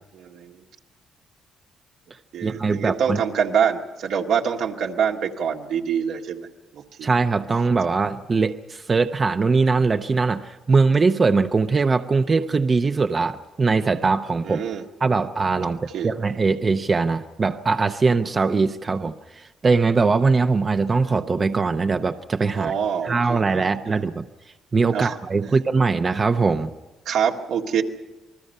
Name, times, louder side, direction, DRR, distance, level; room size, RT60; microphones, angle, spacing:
voice 1, 0.1-0.6 2.3-6.5 6.7-7.1 14.4-14.9 15.7-16.1 22.5-24.0 24.9-25.2 25.5-25.6 27.1-27.8, right 7 dB, 80° right, 1 dB, 1.9 m, -25 dB
voice 2, 2.4-3.2 7.0-14.6 15.0-22.7 23.0-24.3 24.7-26.7, right 4 dB, 35° right, 7 dB, 0.8 m, -21 dB
28.0 x 20.0 x 5.5 m, 1.1 s
cardioid pair, 90°, 0 cm